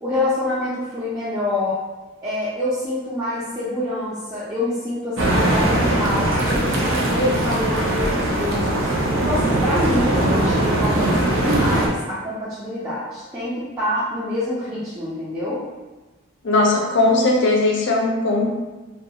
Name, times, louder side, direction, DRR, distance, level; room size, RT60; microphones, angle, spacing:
voice 1, 0.0-1.8 2.2-8.9 9.3-15.6, left 1 dB, 15° right, -11 dB, 0.5 m, -26 dB
sound 1, 5.2-11.9, right 1 dB, 70° right, 0.5 m, -20 dB
voice 2, 16.4-18.5, left 2 dB, 60° left, -1 dB, 0.5 m, -18 dB
2.3 x 2.3 x 2.8 m, 1.2 s
head